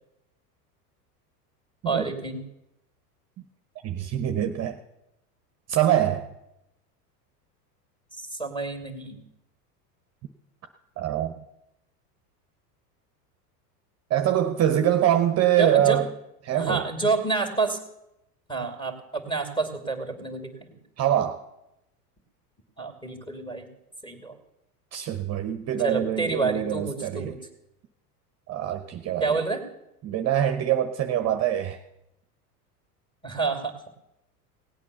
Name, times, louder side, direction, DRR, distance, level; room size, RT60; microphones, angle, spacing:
voice 1, 1.8-2.4 8.2-9.2 15.6-16.0 16.5-17.8 18.5-20.8 22.8-23.7 24.0-24.3 25.8-27.4 29.2-29.6 33.2-33.7, right 4 dB, 10° left, 5 dB, 2.7 m, -28 dB
voice 2, 3.8-4.8 5.7-6.3 11.0-11.3 14.1-16.1 16.4-16.8 21.0-21.4 24.9-27.3 28.5-29.4 30.0-31.8, right 11 dB, 35° right, 8 dB, 0.9 m, -24 dB
17.5 x 8.5 x 6.9 m, 0.87 s
hypercardioid pair, 100°, 47 cm